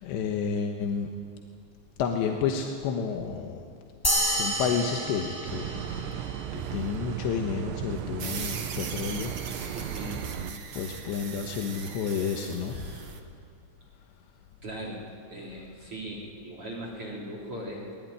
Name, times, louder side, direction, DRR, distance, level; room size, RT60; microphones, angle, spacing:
voice 1, 0.0-1.1 2.0-3.7 4.2-6.2 6.5-9.9 10.7-13.2, left 6 dB, 85° left, 3 dB, 3.5 m, -31 dB
sound 1, 4.0-6.8, equal, 10° left, 1.3 m, -30 dB
sound 2, 5.5-10.5, right 10 dB, 90° right, 3.2 m, -36 dB
sound 3, 8.2-13.2, right 6 dB, 60° right, 1.4 m, -40 dB
voice 2, 9.7-10.3 14.6-15.0 15.3-17.9, right 1 dB, 35° right, -1 dB, 3.9 m, -38 dB
23.5 x 20.5 x 9.9 m, 2.3 s
omnidirectional pair, 4.9 m